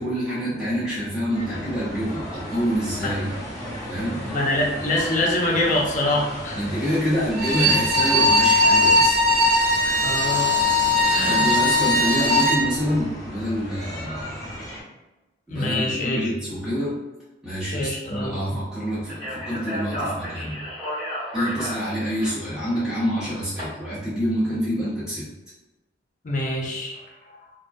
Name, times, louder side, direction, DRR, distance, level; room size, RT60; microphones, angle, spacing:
voice 1, 0.0-3.3 3.9-4.2 6.5-9.1 9.4-9.6 11.3-14.4 15.5-17.0 17.4-20.7 21.3-25.3, equal, 5° right, -10 dB, 0.9 m, -27 dB
sound 1, 1.3-14.8, equal, 20° left, 1.0 m, -36 dB
voice 2, 4.2-6.6 7.6-7.7 10.0-10.6 11.1-11.4 15.5-16.2 17.7-18.6 26.2-27.5, left 1 dB, 45° left, -1 dB, 0.5 m, -25 dB
Bowed string instrument, 7.3-12.6, left 1 dB, 50° right, 0.5 m, -19 dB
Speech, 19.1-23.6, equal, 20° right, 1.1 m, -32 dB
2.3 x 2.2 x 2.5 m, 1.1 s
head